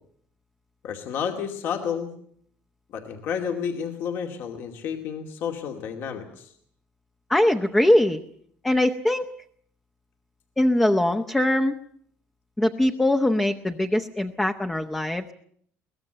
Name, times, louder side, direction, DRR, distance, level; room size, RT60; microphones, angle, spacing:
voice 1, 0.8-2.1 2.9-6.5, left 7 dB, 65° left, 3 dB, 2.4 m, -31 dB
voice 2, 7.3-8.2 8.6-9.3 10.6-11.7 12.6-15.3, left 1 dB, 10° left, 6 dB, 0.9 m, -22 dB
22.5 x 18.5 x 7.9 m, 0.62 s
cardioid pair, 145°, 4 cm